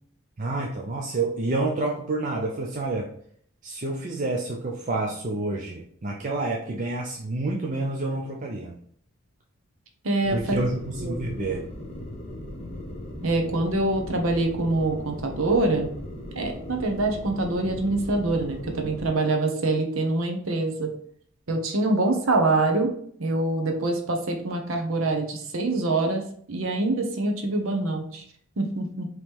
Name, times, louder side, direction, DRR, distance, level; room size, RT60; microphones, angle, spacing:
voice 1, 0.4-3.1 3.6-8.8 10.3-11.6, right 2 dB, 35° right, -1 dB, 0.5 m, -28 dB
voice 2, 10.0-10.6 11.0-11.4 13.2-15.9 16.3-20.9 21.5-22.9 23.2-26.2 26.5-28.2 28.6-29.1, right 2 dB, 70° right, 3 dB, 0.9 m, -25 dB
sound 1, 10.2-19.1, left 1 dB, 25° left, 0.8 m, -38 dB
4.7 x 3.0 x 3.5 m, 0.62 s
head